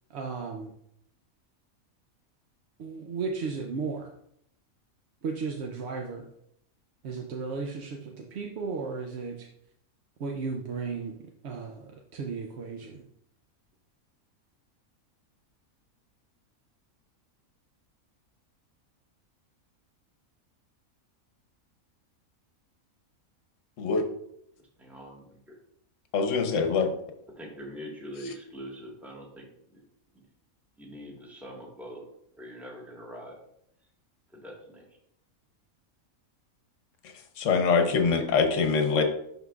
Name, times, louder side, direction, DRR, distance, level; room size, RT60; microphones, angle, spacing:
voice 1, 0.1-0.7 2.8-4.1 5.2-6.2 7.0-9.5 10.2-11.2 11.4-13.0, right 4 dB, 60° right, 2 dB, 0.8 m, -35 dB
voice 2, 24.8-25.5 27.4-29.5 29.7-29.8 30.8-32.0 32.4-33.4 34.3-34.8, equal, ahead, -3 dB, 1.4 m, -43 dB
voice 3, 26.1-26.9 37.4-39.0, left 5 dB, 65° left, 5 dB, 1.1 m, -24 dB
11.0 x 3.8 x 2.4 m, 0.72 s
omnidirectional pair, 1.5 m